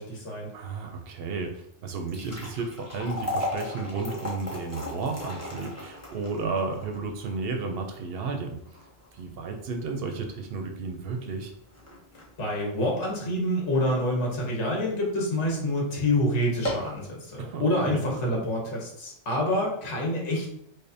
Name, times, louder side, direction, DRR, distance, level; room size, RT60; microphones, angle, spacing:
voice 1, 0.0-0.5 12.4-20.5, left 1 dB, 65° left, -2 dB, 1.3 m, -27 dB
voice 2, 0.5-8.6 9.1-11.5 17.4-18.0, right 4 dB, 65° right, 4 dB, 0.7 m, -33 dB
sound 1, 1.9-14.2 14.6-14.7 15.4-15.6 15.9-16.0 16.4-17.0, left 1 dB, 15° left, 0.7 m, -37 dB
4.9 x 2.1 x 2.6 m, 0.73 s
omnidirectional pair, 1.3 m